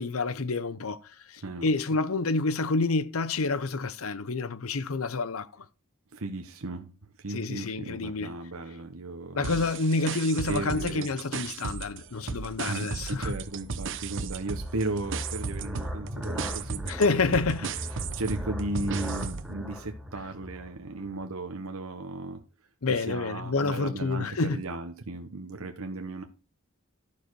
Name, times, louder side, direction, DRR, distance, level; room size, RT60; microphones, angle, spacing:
voice 1, 0.0-5.6 7.3-8.3 9.4-13.3 16.9-17.7 22.8-24.6, left 3 dB, 80° left, 0.8 m, -28 dB
voice 2, 6.1-9.6 10.5-11.1 12.7-17.2 17.9-22.4 22.9-26.2, right 2 dB, 85° right, 1.0 m, -36 dB
sound 1, 9.4-12.0 12.3-19.5, right 5 dB, 60° right, 0.8 m, -35 dB
sound 2, 12.0-21.2, equal, ahead, 2.2 m, -38 dB
12.0 x 6.8 x 4.7 m
head